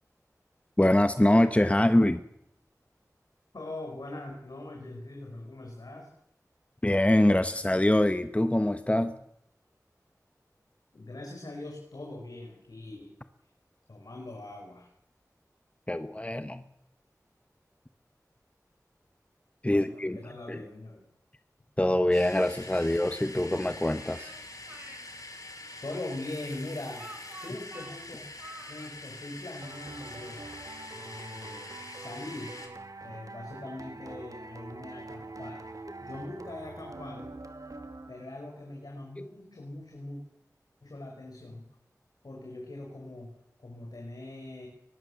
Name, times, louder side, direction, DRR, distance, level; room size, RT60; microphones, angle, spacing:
voice 1, 0.8-2.2 6.8-9.2 15.9-16.6 19.6-20.2 20.5-20.6 21.8-24.3, left 1 dB, 20° left, 9 dB, 1.2 m, -24 dB
voice 2, 3.5-6.1 10.9-13.1 13.9-14.9 19.7-21.0 25.8-28.2 28.7-30.5 30.9-32.6 33.0-35.7 36.0-37.3 38.1-40.2 40.8-41.6 42.2-44.7, left 2 dB, 90° left, 2 dB, 5.4 m, -42 dB
sound 1, 22.1-32.7, left 2 dB, 65° left, 5.3 m, -45 dB
Speech, 23.9-25.0 25.9-28.9, right 1 dB, 25° right, 4.7 m, -48 dB
sound 2, 29.6-38.5, right 2 dB, 65° right, 2.1 m, -45 dB
23.5 x 20.0 x 7.4 m, 0.75 s
wide cardioid pair, 55°, 6 cm